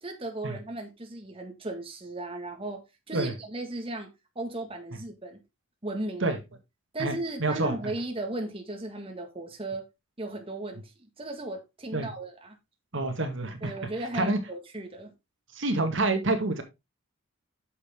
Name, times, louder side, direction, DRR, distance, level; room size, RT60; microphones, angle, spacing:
voice 1, 0.0-4.1 4.4-5.4 5.8-6.3 6.9-9.9 10.2-10.9 11.2-12.6 13.6-15.1, right 2 dB, 25° right, 1.8 m, -36 dB
voice 2, 7.4-7.7 11.9-12.1 12.9-13.7 14.1-14.4 15.6-16.6, right 2 dB, 60° right, 1.9 m, -27 dB
9.4 x 6.7 x 3.7 m
head